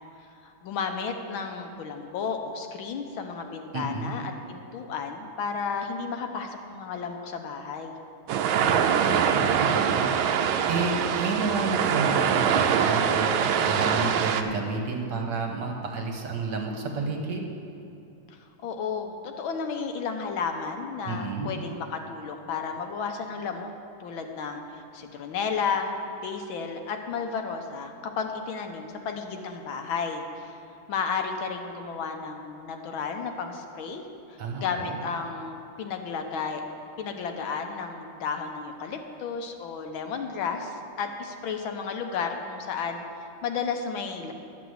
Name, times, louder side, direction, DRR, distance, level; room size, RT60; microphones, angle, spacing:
voice 1, 0.4-8.0 18.6-23.7 24.0-25.9 26.2-30.5 30.9-34.0 34.3-36.6 37.0-43.0 43.4-44.3, left 5 dB, 75° left, 4 dB, 1.7 m, -33 dB
voice 2, 3.7-4.2 8.5-10.2 10.4-17.5 21.0-21.6 34.4-35.0, right 3 dB, 60° right, 2 dB, 1.7 m, -31 dB
sound 1, 8.3-14.4, right 7 dB, 80° right, 1.4 m, -24 dB
11.5 x 7.0 x 7.9 m, 2.7 s
omnidirectional pair, 2.3 m